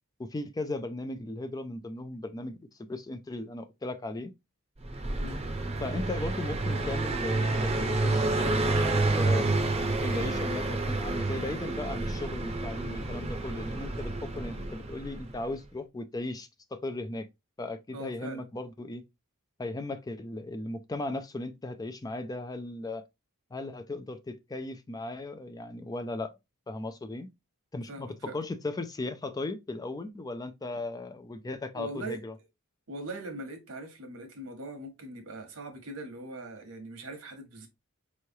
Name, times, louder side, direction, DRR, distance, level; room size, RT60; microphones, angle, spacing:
voice 1, 0.2-2.6 2.9-4.3 5.8-9.5 10.0-17.3 17.6-19.0 19.6-23.0 23.5-26.4 26.7-27.3 27.7-32.3, left 2 dB, 15° left, 0.4 m, -37 dB
Car passing by, 4.8-15.4, right 2 dB, 30° right, 0.7 m, -29 dB
voice 2, 17.9-18.5 27.9-28.4 30.7-30.9 31.7-32.2 32.9-37.7, right 2 dB, 75° right, 1.2 m, -41 dB
4.5 x 3.1 x 2.7 m
head